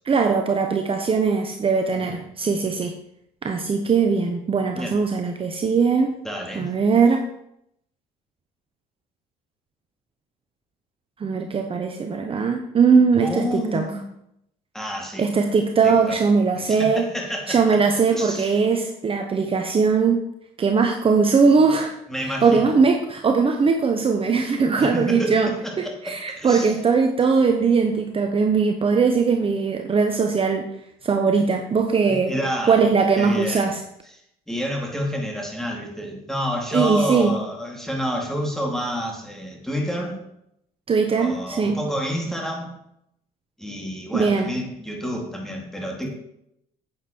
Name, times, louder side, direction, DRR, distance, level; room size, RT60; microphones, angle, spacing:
voice 1, 0.0-2.9 3.4-6.1 6.5-7.2 11.2-13.9 15.2-17.0 17.5-20.2 20.6-21.9 22.2-30.7 31.0-32.3 32.7-33.8 36.7-37.3 40.9-41.8 44.1-44.5, right 5 dB, 30° right, 4 dB, 1.0 m, -20 dB
voice 2, 6.2-6.7 13.2-14.0 14.7-15.3 15.8-16.2 16.5-17.8 18.1-18.5 22.1-22.7 24.8-26.7 32.0-32.8 33.2-33.7 34.5-40.2 41.2-42.7 43.6-46.1, equal, ahead, 0 dB, 2.9 m, -29 dB
9.9 x 8.3 x 4.6 m, 0.78 s
cardioid pair, 100°, 17 cm